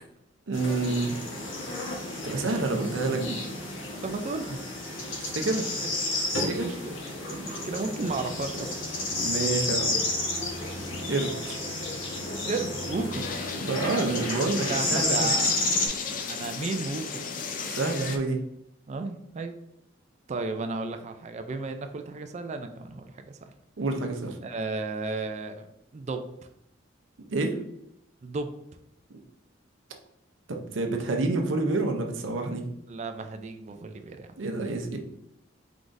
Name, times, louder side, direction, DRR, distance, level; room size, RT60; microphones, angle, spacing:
sound 1, 0.5-15.9, left 2 dB, 80° left, 1.2 m, -31 dB
voice 1, 0.5-1.2 2.2-3.4 5.2-5.7 6.3-6.7 9.1-10.0 11.1-11.5 13.5-15.3 17.6-18.4 23.8-24.4 27.3-27.6 30.5-32.6 34.4-35.0, right 3 dB, 75° right, 3 dB, 0.7 m, -28 dB
voice 2, 2.6-2.9 4.0-4.6 5.6-5.7 6.4-6.9 7.3-8.7 12.4-13.4 14.7-15.7 16.1-17.3 18.9-19.5 20.3-23.4 24.4-25.7 25.9-26.3 28.2-28.6 32.9-34.3, right 3 dB, 35° right, 7 dB, 0.4 m, -34 dB
sound 2, 13.1-18.2, left 5 dB, 45° left, 0.5 m, -35 dB
4.6 x 3.8 x 2.6 m, 0.79 s
head